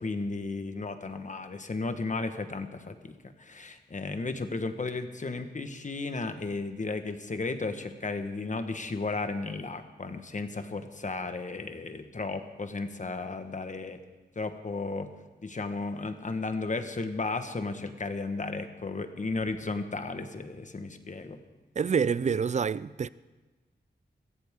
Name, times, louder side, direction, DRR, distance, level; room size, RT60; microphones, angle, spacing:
voice 1, 0.0-14.0 14.3-15.1 15.4-21.4, left 3 dB, 40° left, 1.3 m, -34 dB
voice 2, 21.8-23.1, right 6 dB, 40° right, 0.4 m, -27 dB
22.5 x 15.5 x 3.7 m
wide cardioid pair, 75°, 18 cm